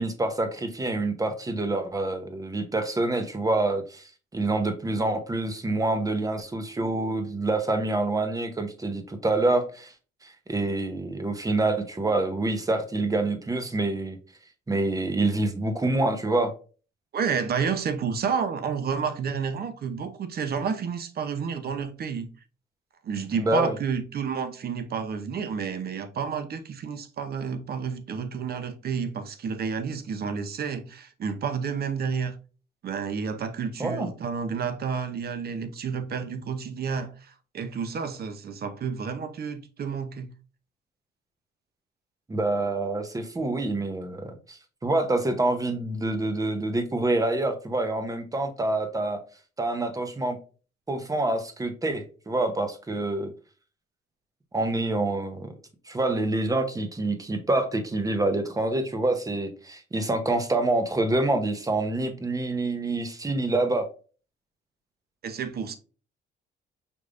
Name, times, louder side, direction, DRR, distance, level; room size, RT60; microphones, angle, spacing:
voice 1, 0.0-9.9 10.2-14.2 14.7-16.5 23.3-23.8 33.8-34.1 42.3-49.2 49.6-50.4 50.9-53.3 54.5-55.5 55.9-63.9, right 2 dB, 15° right, 0.8 m, -26 dB
voice 2, 17.1-22.3 23.0-32.3 32.8-40.3 65.2-65.7, right 6 dB, 50° right, 0.7 m, -30 dB
5.1 x 3.2 x 2.5 m
cardioid pair, 90°, 20 cm